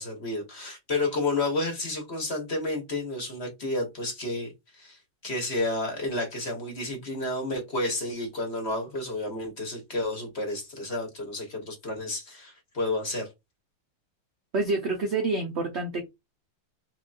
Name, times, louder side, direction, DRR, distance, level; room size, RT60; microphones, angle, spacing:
voice 1, 0.0-13.3, left 2 dB, 35° left, 1.4 m, -31 dB
voice 2, 14.5-16.1, right 3 dB, 75° right, 0.6 m, -27 dB
4.0 x 2.9 x 2.5 m
omnidirectional pair, 2.2 m